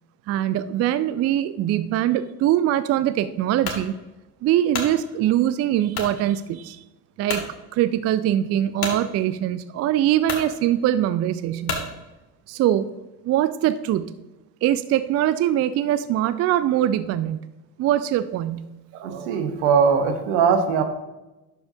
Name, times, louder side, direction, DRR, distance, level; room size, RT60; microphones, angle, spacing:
voice 1, 0.3-3.9 4.4-6.8 7.2-7.4 7.7-11.8 12.5-12.9 13.2-14.1 14.6-17.4 17.8-18.7, right 12 dB, 35° right, 14 dB, 0.4 m, -22 dB
sound 1, 3.6-3.9 4.4-4.9 5.9-6.2 6.7-6.8 7.3-7.5 8.8-9.0 9.8-9.9 10.2-10.5 11.6-11.9, left 4 dB, 50° left, 1.9 m, -29 dB
voice 2, 18.9-20.8, right 6 dB, 70° right, 7 dB, 1.2 m, -20 dB
10.5 x 6.9 x 2.7 m, 1.0 s
hypercardioid pair, 55°, 49 cm